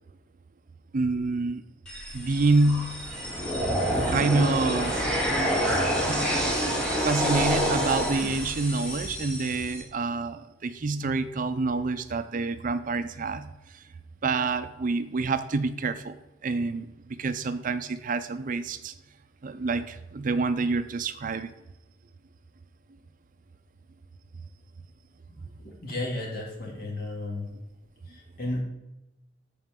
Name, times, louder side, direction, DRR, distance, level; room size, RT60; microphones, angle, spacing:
voice 1, 0.9-1.6 2.1-2.9 4.0-5.0 7.0-13.8 14.2-16.2 16.4-16.9 17.2-18.9 19.4-21.5, right 3 dB, 45° right, 11 dB, 0.5 m, -27 dB
sound 1, 1.9-9.8, equal, 5° left, 1.9 m, -27 dB
voice 2, 25.6-27.5 28.1-28.6, left 2 dB, 55° left, -2 dB, 2.4 m, -33 dB
13.5 x 5.0 x 3.6 m, 0.95 s
head